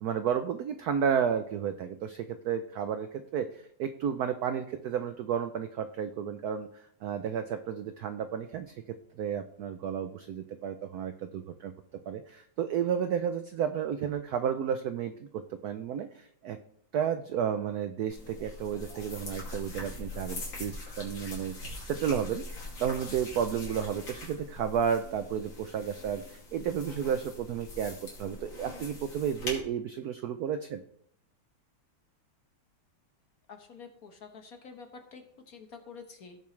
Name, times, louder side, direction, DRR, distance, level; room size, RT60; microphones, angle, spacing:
voice 1, 0.0-6.7 7.0-8.8 9.2-11.7 12.1-16.6 16.9-21.5 21.8-22.4 22.8-30.8, right 8 dB, 80° right, 9 dB, 0.8 m, -32 dB
sound 1, 18.1-29.6, left 2 dB, 65° left, 3.3 m, -42 dB
voice 2, 33.5-36.4, left 5 dB, 50° left, 5 dB, 1.5 m, -48 dB
16.5 x 7.0 x 3.2 m, 0.68 s
omnidirectional pair, 2.3 m